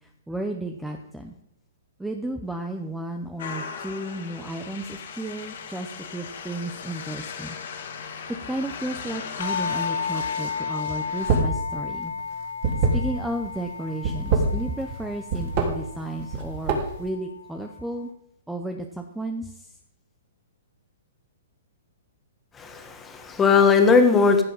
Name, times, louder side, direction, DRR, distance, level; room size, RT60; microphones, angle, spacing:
voice 1, 0.3-1.3 2.0-7.6 8.5-12.1 12.8-18.1 18.5-19.7, right 1 dB, 5° right, 4 dB, 0.8 m, -33 dB
sound 1, 3.4-11.4, left 6 dB, 60° left, 2.4 m, -38 dB
sound 2, 9.4-18.1, left 5 dB, 80° left, 3.6 m, -33 dB
sound 3, 11.1-11.6 11.9-13.5 13.9-15.0 15.3-15.7 16.2-17.0, right 4 dB, 40° right, 3.4 m, -23 dB
voice 2, 22.6-24.4, left 5 dB, 15° left, 5 dB, 1.6 m, -18 dB
15.5 x 7.4 x 5.6 m, 0.80 s
hypercardioid pair, 155°, 0 cm